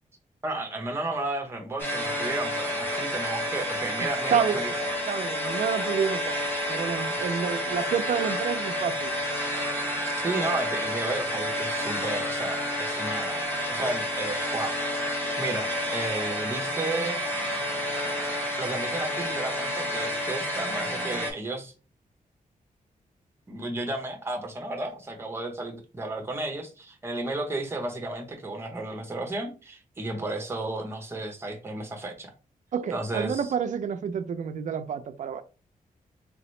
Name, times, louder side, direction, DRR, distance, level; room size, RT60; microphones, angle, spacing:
voice 1, 0.4-4.7 7.2-7.4 10.0-14.8 15.0-17.2 18.6-21.7 23.5-32.3 32.9-33.4, right 2 dB, 15° right, 0.8 m, -33 dB
sound 1, 1.8-21.3, equal, 15° left, 1.0 m, -30 dB
voice 2, 4.0-4.6 5.1-6.4 6.7-9.1 32.7-35.4, right 7 dB, 60° right, 0.4 m, -29 dB
3.4 x 2.9 x 3.1 m
wide cardioid pair, 175°, 14 cm